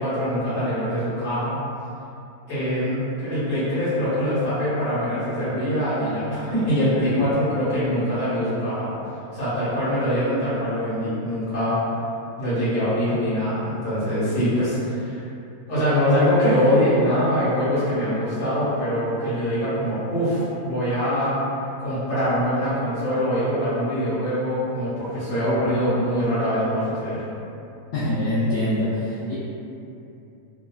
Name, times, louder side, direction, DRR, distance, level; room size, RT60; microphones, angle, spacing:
voice 1, 0.0-1.6 2.5-9.0 9.3-11.8 12.4-15.2 15.7-21.3 21.8-27.2, equal, 45° left, -13 dB, 1.4 m, -23 dB
voice 2, 27.9-29.3, left 1 dB, 70° left, -11 dB, 1.0 m, -24 dB
3.1 x 2.4 x 2.2 m, 2.7 s
omnidirectional pair, 1.8 m